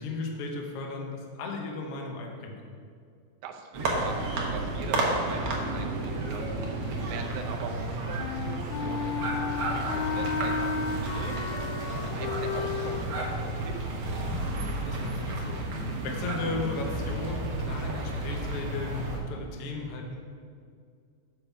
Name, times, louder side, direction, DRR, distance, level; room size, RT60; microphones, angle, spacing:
voice 1, 0.0-2.8 14.8-15.6 16.0-20.2, left 3 dB, 65° left, 1 dB, 1.6 m, -35 dB
voice 2, 3.4-11.6 11.9-14.3, right 6 dB, 75° right, 4 dB, 2.1 m, -42 dB
sound 1, 3.7-19.2, right 2 dB, 60° right, 1.6 m, -32 dB
Wind instrument woodwind instrument, 8.2-13.1, left 6 dB, 80° left, 1.7 m, -33 dB
8.1 x 5.4 x 5.8 m, 2.2 s
omnidirectional pair, 3.6 m